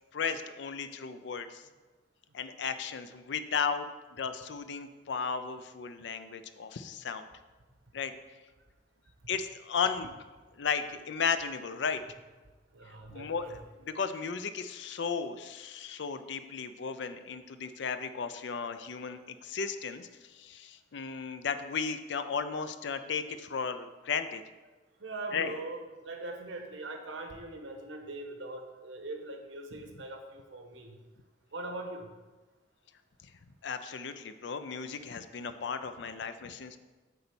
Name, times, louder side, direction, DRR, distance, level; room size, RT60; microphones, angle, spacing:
voice 1, 0.1-1.6 2.3-3.9 4.2-7.3 7.9-8.1 9.3-10.2 10.6-12.0 13.1-24.4 25.3-25.5 33.6-36.8, left 6 dB, 70° left, 10 dB, 0.5 m, -35 dB
voice 2, 12.7-13.5 25.0-25.8 26.0-30.9 31.5-32.0, right 2 dB, 90° right, 3 dB, 1.2 m, -41 dB
8.3 x 4.0 x 7.0 m, 1.2 s
head